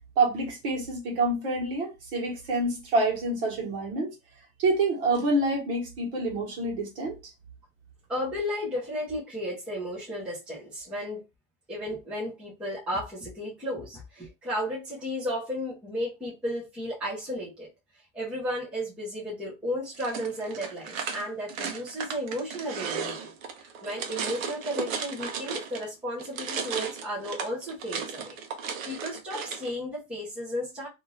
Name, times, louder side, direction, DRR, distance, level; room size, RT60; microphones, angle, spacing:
voice 1, 0.2-4.1 4.6-7.2, right 2 dB, 40° right, 1.3 m, -27 dB
voice 2, 8.1-11.2 11.7-17.7 18.1-23.3 23.6-28.3 28.9-30.9, equal, 5° right, 0.8 m, -34 dB
sound 1, 19.9-25.9 26.2-29.7, right 6 dB, 70° right, 0.8 m, -35 dB
2.7 x 2.5 x 3.1 m
supercardioid pair, 170°, 42 cm